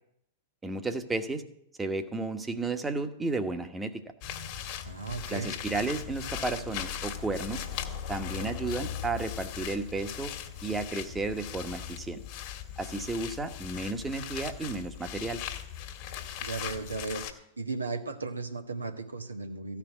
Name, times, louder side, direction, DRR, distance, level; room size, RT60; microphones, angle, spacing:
voice 1, 0.6-1.4 1.8-4.1 5.3-7.6 8.1-10.3 10.6-12.2 12.8-15.4, right 3 dB, 15° right, 8 dB, 1.2 m, -33 dB
sound 1, 4.2-17.3, left 9 dB, 45° left, 1.7 m, -39 dB
voice 2, 4.8-5.5 16.4-17.2 17.6-19.8, right 3 dB, 85° right, 5 dB, 1.3 m, -35 dB
14.0 x 5.9 x 9.3 m, 0.73 s
figure-of-eight pair, 95°, 0 cm